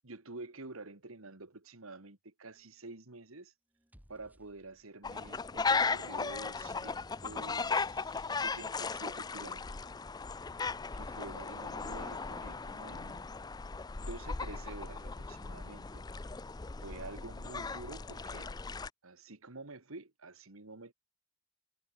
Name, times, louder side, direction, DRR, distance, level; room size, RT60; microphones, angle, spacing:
voice 1, 0.0-3.5 4.1-9.8 10.9-13.3 14.0-16.1 16.8-18.5 19.0-20.9, right 2 dB, 80° right, 2.0 m, -48 dB
sound 1, 2.4-2.9 3.7-5.1 5.8-8.1 10.4-11.4, equal, 10° right, 2.3 m, -65 dB
sound 2, 5.0-18.9, left 4 dB, 20° left, 0.4 m, -37 dB
head